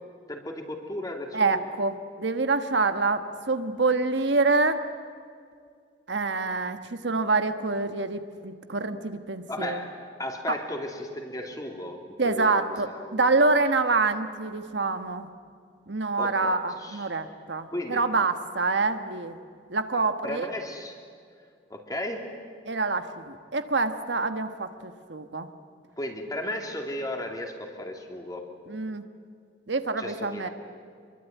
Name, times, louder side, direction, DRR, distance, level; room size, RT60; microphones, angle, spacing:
voice 1, 0.3-1.6 9.5-13.3 16.2-17.1 17.7-18.0 20.2-21.0 21.7-22.3 26.0-28.5 30.0-30.5, left 1 dB, 20° left, 2 dB, 2.9 m, -35 dB
voice 2, 1.3-4.8 6.1-9.8 12.2-15.3 15.9-19.4 19.7-20.5 22.7-25.5 28.7-29.0 29.7-30.5, right 3 dB, 75° right, 8 dB, 1.4 m, -26 dB
26.0 x 23.0 x 9.4 m, 2.2 s
head